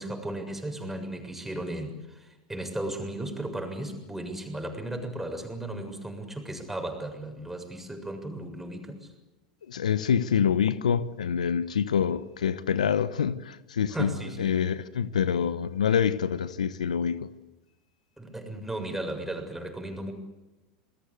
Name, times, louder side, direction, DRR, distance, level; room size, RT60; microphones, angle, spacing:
voice 1, 0.0-9.1 13.9-14.6 18.2-20.1, right 1 dB, 5° right, 7.0 m, -35 dB
voice 2, 9.7-14.1 14.4-17.3, left 7 dB, 85° left, 1.0 m, -26 dB
28.0 x 21.0 x 8.1 m
hypercardioid pair, 90°, 4 cm